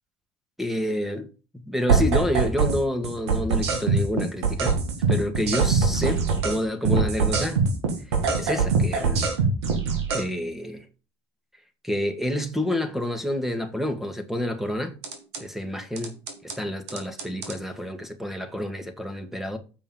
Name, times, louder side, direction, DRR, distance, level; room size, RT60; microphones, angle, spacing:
voice 1, 0.6-1.3 1.5-4.8 5.1-7.6 8.1-9.3 10.1-10.9 11.8-15.0 15.4-16.2 16.4-19.6, left 1 dB, ahead, 2.2 m, -28 dB
sound 1, 1.9-2.8 3.0-6.6 6.8-10.2 15.0-15.4 16.0-16.5 16.9-17.5, right 4 dB, 90° right, 2.1 m, -23 dB
7.7 x 5.4 x 7.2 m
hypercardioid pair, 70°, 14 cm